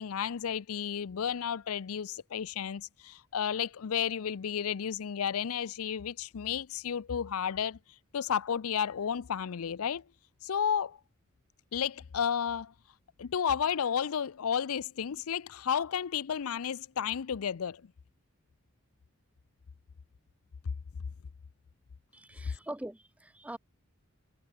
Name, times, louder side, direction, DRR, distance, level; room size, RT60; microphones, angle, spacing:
voice 1, 0.0-7.8 8.1-10.0 10.4-11.0 11.7-12.7 13.2-17.8, left 8 dB, 75° left, 0.5 m, -32 dB
voice 2, 22.1-23.6, right 1 dB, 5° right, 0.7 m, -42 dB
head